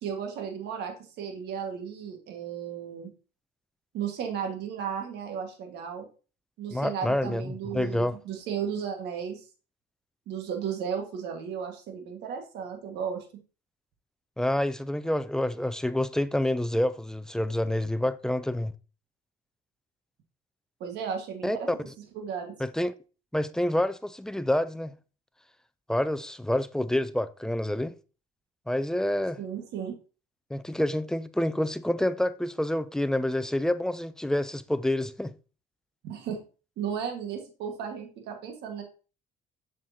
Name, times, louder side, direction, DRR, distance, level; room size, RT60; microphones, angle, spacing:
voice 1, 0.0-3.1 3.9-6.1 6.6-9.4 10.3-13.2 20.8-21.7 22.1-22.6 29.4-29.9 36.0-36.4 36.8-38.8, right 7 dB, 80° right, 1.6 m, -34 dB
voice 2, 6.7-8.2 14.4-18.7 21.4-21.6 22.6-23.0 23.3-24.9 25.9-27.9 28.7-29.4 30.5-35.3, left 1 dB, 5° left, 0.4 m, -28 dB
7.3 x 6.5 x 2.8 m
cardioid pair, 110°, 17 cm